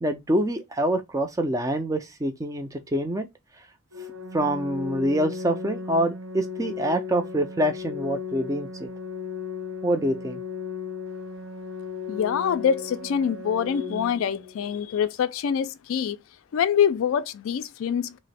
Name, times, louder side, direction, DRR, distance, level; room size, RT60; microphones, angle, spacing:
voice 1, 0.0-3.3 4.3-8.9 9.8-10.4, right 1 dB, 15° right, 0.4 m, -26 dB
Organ, 3.9-14.9, left 5 dB, 70° right, 0.6 m, -36 dB
voice 2, 12.1-16.2 16.5-18.2, left 8 dB, 70° left, 0.3 m, -25 dB
2.9 x 2.0 x 4.1 m
head